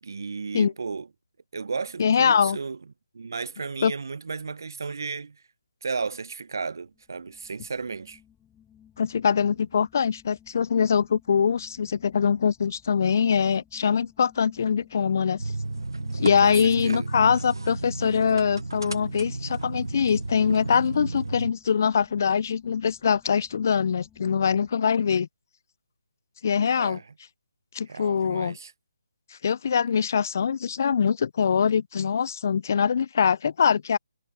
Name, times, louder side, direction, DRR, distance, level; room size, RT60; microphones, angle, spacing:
voice 1, 0.0-1.1 1.5-2.8 3.1-5.4 5.8-8.2 16.4-17.1 26.8-27.1 27.9-28.7, right 4 dB, 65° right, 0.9 m, -34 dB
voice 2, 2.0-2.6 3.8-3.9 9.0-15.4 16.1-25.3 26.4-27.0 27.7-28.5 29.3-34.0, left 7 dB, 50° left, 0.3 m, -23 dB
sound 1, 6.9-24.8, left 9 dB, 10° left, 4.0 m, -58 dB
sound 2, 15.4-21.5, right 2 dB, 85° right, 0.4 m, -32 dB
figure-of-eight pair, 150°, 2 cm